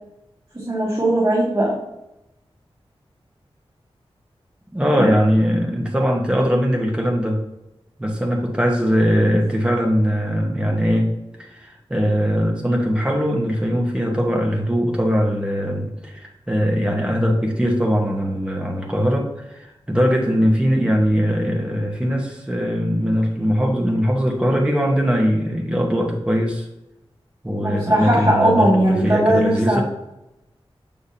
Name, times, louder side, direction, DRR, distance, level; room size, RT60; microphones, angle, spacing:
voice 1, 0.5-1.7 5.0-5.1 27.6-29.8, right 1 dB, 25° right, -9 dB, 2.3 m, -18 dB
voice 2, 4.7-7.4 8.0-11.1 11.4-26.6 27.4-29.8, equal, 10° right, 0 dB, 1.2 m, -20 dB
6.7 x 5.7 x 2.8 m, 0.90 s
wide cardioid pair, 95°, 10 cm